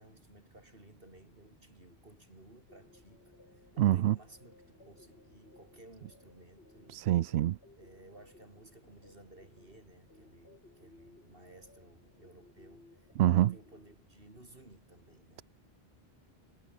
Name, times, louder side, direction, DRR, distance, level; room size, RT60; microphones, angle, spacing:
voice 1, 0.0-7.1 7.8-15.4, right 1 dB, 60° right, 5.7 m, -57 dB
sound 1, 2.7-14.0, left 2 dB, 80° left, 4.6 m, -61 dB
voice 2, 3.8-4.1 6.9-7.6 13.2-13.5, right 13 dB, 85° right, 0.8 m, -25 dB
omnidirectional pair, 1.1 m